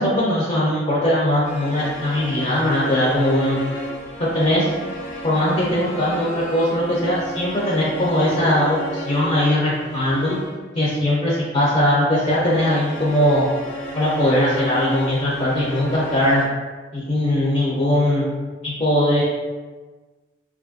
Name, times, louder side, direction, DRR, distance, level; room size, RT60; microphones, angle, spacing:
voice 1, 0.0-3.6 4.2-4.7 5.2-10.4 10.7-13.4 13.9-16.4 16.9-18.3 18.6-19.2, left 1 dB, 30° left, -6 dB, 0.4 m, -20 dB
sound 1, 1.4-10.7 12.2-16.5, equal, 80° left, 0.6 m, -33 dB
2.6 x 2.3 x 2.4 m, 1.3 s
head